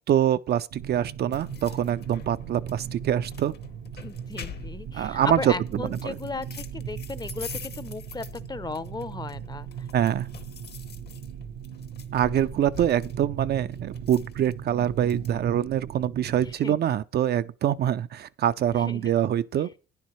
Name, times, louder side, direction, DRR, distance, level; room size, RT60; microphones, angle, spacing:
voice 1, 0.1-3.5 4.9-5.5 5.8-6.2 9.9-10.3 12.1-19.7, right 10 dB, 55° right, 0.4 m, -25 dB
sound 1, 0.7-16.5, right 8 dB, 75° right, 0.8 m, -37 dB
sound 2, 1.3-15.3, left 7 dB, 55° left, 1.0 m, -45 dB
voice 2, 4.0-9.9 16.4-16.7 18.7-19.1, left 3 dB, 20° left, 0.6 m, -36 dB
11.5 x 9.7 x 3.1 m
cardioid pair, 90°, 20 cm